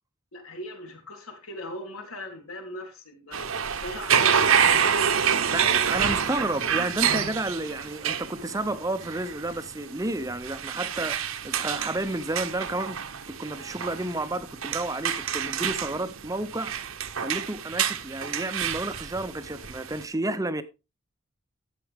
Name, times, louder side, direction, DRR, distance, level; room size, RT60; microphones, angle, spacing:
voice 1, 0.3-3.5 3.8-4.9 5.4-5.8, left 1 dB, 90° left, 3.7 m, -38 dB
sound 1, 3.3-20.0, right 7 dB, 75° right, 1.0 m, -27 dB
voice 2, 5.5-11.2 11.4-16.7 17.2-20.6, right 2 dB, 15° right, 0.6 m, -31 dB
12.5 x 8.2 x 3.5 m
head